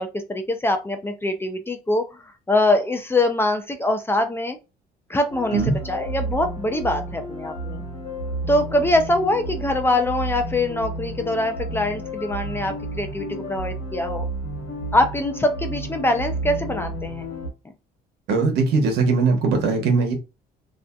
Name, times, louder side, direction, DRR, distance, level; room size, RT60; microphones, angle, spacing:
voice 1, 0.0-4.6 5.1-7.8 8.5-14.2 14.9-17.2, left 1 dB, 15° left, 0.4 m, -23 dB
sound 1, 5.3-17.5, right 1 dB, 85° left, 1.0 m, -31 dB
voice 2, 18.3-20.1, right 4 dB, 75° right, 0.9 m, -20 dB
2.5 x 2.4 x 2.2 m
cardioid pair, 110°, 17 cm